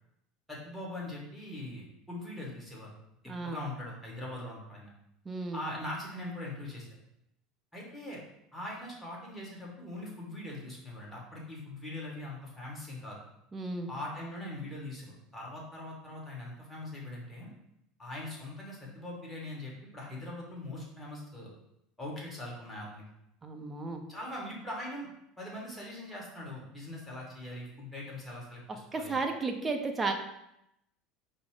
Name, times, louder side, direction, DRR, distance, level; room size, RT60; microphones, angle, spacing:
voice 1, 0.5-2.9 3.2-4.9 5.5-6.9 7.7-8.2 8.5-13.2 13.9-17.5 18.0-21.5 22.0-23.0 24.1-25.1 25.4-29.2, left 1 dB, 5° left, -4 dB, 1.5 m, -41 dB
voice 2, 3.3-3.6 5.3-5.6 13.5-13.9 23.4-24.0 28.9-30.1, right 3 dB, 20° right, 4 dB, 0.6 m, -33 dB
5.0 x 2.0 x 4.8 m, 0.81 s
supercardioid pair, 105°, 0 cm